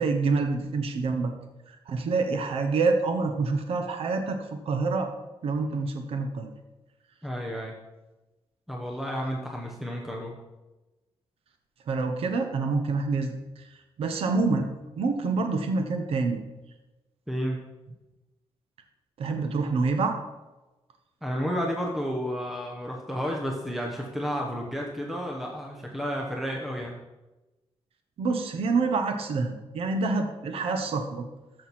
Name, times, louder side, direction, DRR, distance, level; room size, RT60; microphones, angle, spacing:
voice 1, 0.0-1.3 1.7-5.1 5.4-6.5 11.9-13.3 14.0-14.7 15.0-16.4 19.2-20.2 28.2-31.3, right 4 dB, 70° right, 5 dB, 1.2 m, -27 dB
voice 2, 7.2-7.8 8.7-10.4 17.3-17.7 21.2-27.0, equal, ahead, -1 dB, 1.2 m, -31 dB
14.0 x 6.6 x 4.4 m, 1.1 s
wide cardioid pair, 140°, 10 cm